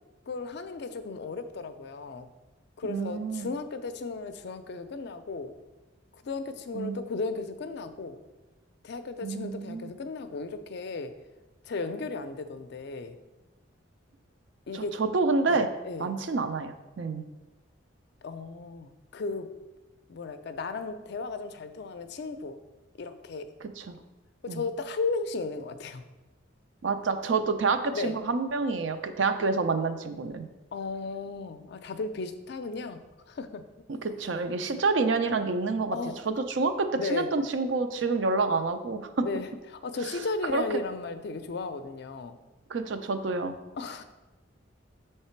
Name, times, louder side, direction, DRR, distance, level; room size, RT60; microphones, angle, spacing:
voice 1, 0.3-2.3 2.8-5.5 6.1-8.2 8.8-11.1 11.6-13.2 14.7-15.0 15.5-16.1 18.2-19.5 20.1-22.6 23.0-23.5 24.4-26.1 27.9-28.2 30.7-33.0 33.3-33.6 35.9-36.2 36.9-37.3 39.2-42.4 43.7-44.0, left 3 dB, 60° left, 9 dB, 0.4 m, -35 dB
voice 2, 2.9-3.5 6.7-7.0 9.2-9.9 14.7-15.7 16.0-17.2 23.6-23.9 24.5-24.6 26.8-30.5 33.9-36.0 36.3-39.2 40.5-40.6 42.7-43.6, right 4 dB, 65° right, 8 dB, 0.5 m, -28 dB
6.5 x 3.3 x 4.4 m, 1.1 s
head